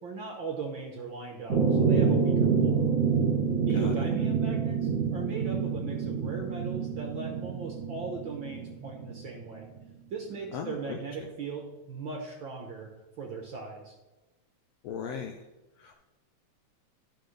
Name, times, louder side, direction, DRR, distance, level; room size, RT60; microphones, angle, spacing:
voice 1, 0.0-2.8 3.6-9.7 10.1-12.9 13.2-13.9, right 4 dB, 55° right, 1 dB, 1.4 m, -38 dB
sound 1, 1.5-9.3, right 6 dB, 30° right, 2.8 m, -27 dB
voice 2, 3.7-4.1 10.5-11.3 14.8-15.4 15.8-15.9, left 7 dB, 75° left, 4 dB, 1.5 m, -38 dB
12.0 x 6.4 x 3.3 m, 1.1 s
omnidirectional pair, 3.4 m